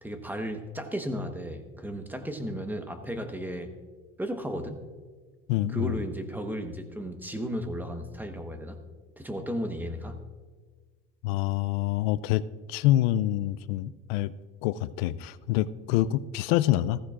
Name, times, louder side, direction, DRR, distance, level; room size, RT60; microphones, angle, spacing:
voice 1, 0.0-3.7 4.2-4.8 5.7-8.8 9.2-10.2, equal, 5° right, 7 dB, 1.1 m, -34 dB
voice 2, 5.5-6.0 11.2-14.3 14.6-17.0, left 14 dB, 85° left, 16 dB, 0.5 m, -26 dB
15.0 x 14.5 x 2.5 m, 1.4 s
supercardioid pair, 110°, 29 cm